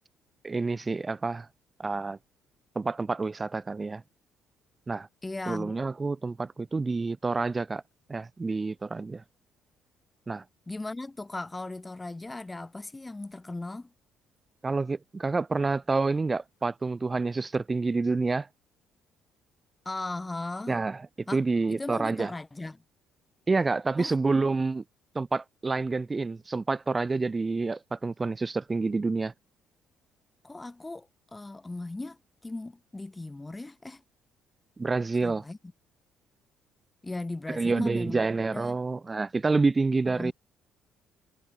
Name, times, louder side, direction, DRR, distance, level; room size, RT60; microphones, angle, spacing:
voice 1, 0.4-1.5 1.8-2.2 2.8-4.0 4.9-5.1 5.5-7.8 8.1-9.2 10.3-10.4 14.6-18.5 20.7-21.0 21.3-22.3 23.5-24.8 25.1-29.3 34.8-35.4 37.5-40.3, right 3 dB, 20° right, 0.4 m, -28 dB
voice 2, 5.2-5.7 10.7-13.9 19.8-20.8 21.3-21.4 21.7-22.8 24.0-24.2 30.4-34.0 35.2-35.6 37.0-38.2 38.5-38.8 40.1-40.3, left 2 dB, 15° left, 1.5 m, -37 dB
cardioid pair, 120°, 0 cm